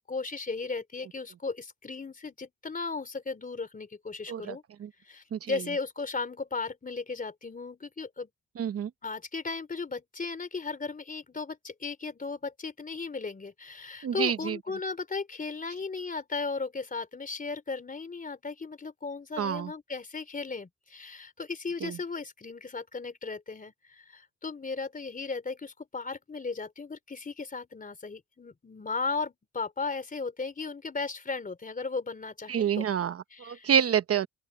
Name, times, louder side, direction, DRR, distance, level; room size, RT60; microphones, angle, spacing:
voice 1, 0.1-4.6 5.0-8.3 9.0-32.9 33.3-33.7, left 4 dB, 25° left, 3.6 m, -36 dB
voice 2, 4.3-4.9 5.3-5.5 8.6-8.9 14.0-14.6 19.4-19.7 21.8-22.0 32.5-34.3, right 8 dB, 50° right, 1.0 m, -28 dB
open air
cardioid pair, 90°, 30 cm